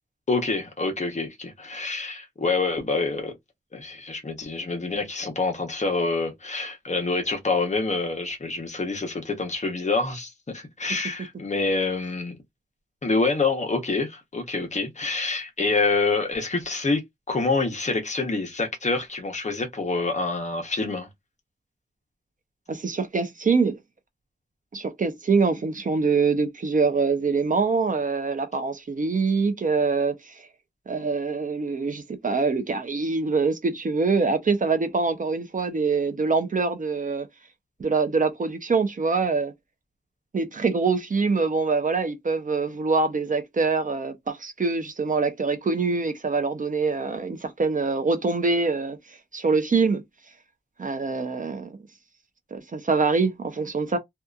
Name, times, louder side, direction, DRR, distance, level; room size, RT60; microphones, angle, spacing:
voice 1, 0.3-3.3 3.7-12.4 13.0-17.0 17.3-21.1, left 3 dB, 40° left, 0.9 m, -26 dB
voice 2, 22.7-23.8 24.7-30.3 30.9-37.3 37.8-39.5 40.3-49.0 49.3-50.0 50.8-51.8 52.5-54.0, right 4 dB, 45° right, 0.6 m, -24 dB
2.7 x 2.4 x 2.3 m
wide cardioid pair, 115°, 18 cm